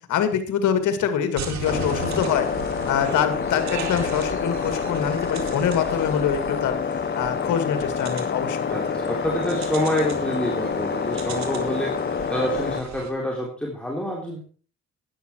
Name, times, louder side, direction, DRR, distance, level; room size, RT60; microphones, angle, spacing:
voice 1, 0.1-6.8 7.2-8.6, left 8 dB, 75° left, 9 dB, 2.2 m, -25 dB
sound 1, 1.4-13.1, right 6 dB, 65° right, 2.9 m, -37 dB
sound 2, 1.6-12.8, left 6 dB, 35° left, 1.0 m, -27 dB
voice 2, 8.7-11.9 12.3-14.4, equal, 5° left, -2 dB, 3.5 m, -27 dB
12.5 x 10.0 x 4.6 m, 0.40 s
cardioid pair, 90°, 30 cm